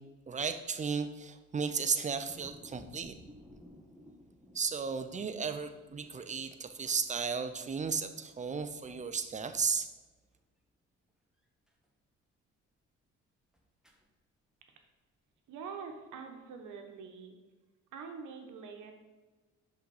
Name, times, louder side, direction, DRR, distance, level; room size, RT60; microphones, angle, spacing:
voice 1, 0.3-3.1 4.5-9.9, right 5 dB, 25° right, 9 dB, 0.5 m, -34 dB
sound 1, 2.3-7.8 8.2-10.1 10.4-10.5 11.7-11.9 13.5-14.1, equal, ahead, 0.9 m, -57 dB
voice 2, 15.5-17.3 17.9-18.9, right 5 dB, 80° right, 4 dB, 1.0 m, -45 dB
5.8 x 3.9 x 4.8 m, 1.2 s
cardioid pair, 90°, 30 cm